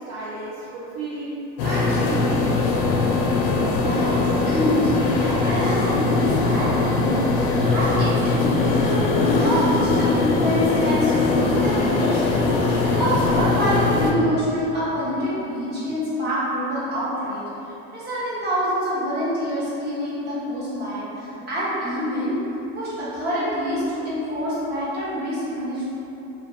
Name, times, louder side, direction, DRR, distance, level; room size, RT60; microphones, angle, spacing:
voice 1, 0.0-2.9, right 2 dB, 55° right, -9 dB, 0.6 m, -32 dB
sound 1, 1.6-14.1, left 3 dB, 65° left, 0.5 m, -21 dB
voice 2, 3.8-17.4 17.9-22.4 22.7-25.8, equal, 30° right, -11 dB, 1.1 m, -26 dB
2.2 x 2.2 x 3.4 m, 3.0 s
supercardioid pair, 140°, 33 cm